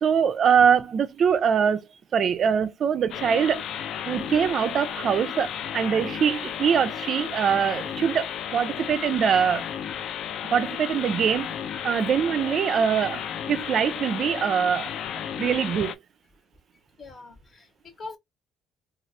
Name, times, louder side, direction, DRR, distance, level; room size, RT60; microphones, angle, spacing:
voice 1, 0.0-1.9 2.1-3.6 4.0-9.7 10.5-11.6 11.8-14.9 15.4-16.0, right 7 dB, 50° right, 0.4 m, -23 dB
sound 1, 3.1-15.9, left 9 dB, 60° left, 0.4 m, -33 dB
voice 2, 17.0-18.2, left 3 dB, 35° left, 1.0 m, -42 dB
3.1 x 2.3 x 2.7 m
cardioid pair, 100°, 0 cm